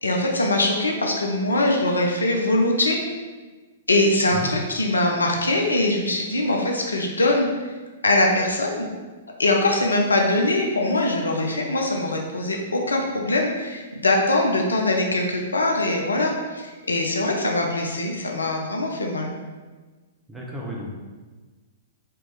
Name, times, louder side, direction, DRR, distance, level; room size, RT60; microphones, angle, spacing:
voice 1, 0.0-3.0 3.9-7.5 8.0-8.9 9.4-19.3, left 2 dB, 75° left, 1 dB, 0.6 m, -22 dB
voice 2, 20.3-20.9, equal, 10° right, -3 dB, 0.9 m, -33 dB
4.5 x 2.9 x 3.4 m, 1.3 s
figure-of-eight pair, 110°, 0 cm